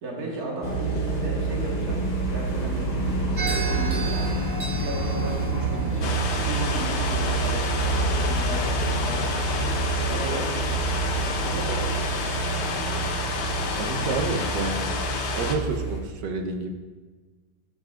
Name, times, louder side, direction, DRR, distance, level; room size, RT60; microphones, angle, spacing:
voice 1, 0.0-2.1 2.3-4.4 4.8-6.2 6.4-10.6 11.2-12.0, right 1 dB, 60° right, -3 dB, 2.0 m, -35 dB
sound 1, 0.6-16.0, right 3 dB, 25° left, 1.4 m, -27 dB
sound 2, 3.4-11.7, right 5 dB, 40° right, 0.8 m, -38 dB
sound 3, 6.0-15.6, left 5 dB, 55° left, 0.8 m, -30 dB
voice 2, 13.7-14.9 15.3-16.7, right 4 dB, 80° right, 5 dB, 1.5 m, -29 dB
15.0 x 5.3 x 2.5 m, 1.3 s
omnidirectional pair, 1.8 m